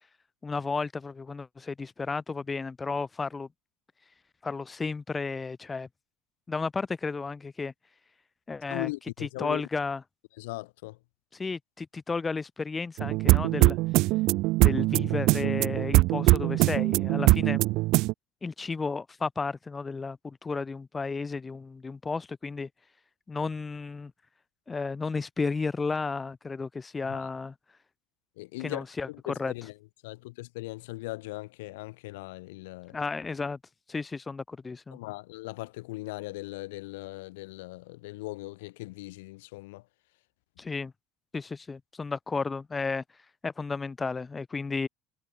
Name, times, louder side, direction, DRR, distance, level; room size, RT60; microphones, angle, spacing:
voice 1, 0.4-3.5 4.4-5.9 6.5-7.7 8.5-8.9 9.4-10.0 11.3-13.8 14.6-17.6 18.4-22.7 23.3-24.1 24.7-27.5 28.6-29.1 29.4-29.5 32.9-33.6 33.9-35.0 40.6-40.9 41.3-43.0 43.4-44.9, left 4 dB, 20° left, 0.4 m, -33 dB
voice 2, 8.7-9.6 10.4-11.0 27.1-27.3 28.4-29.7 30.0-33.0 34.9-39.8, left 21 dB, 75° left, 0.6 m, -39 dB
sound 1, 13.0-18.1, right 21 dB, 60° right, 0.4 m, -22 dB
hypercardioid pair, 75°, 0 cm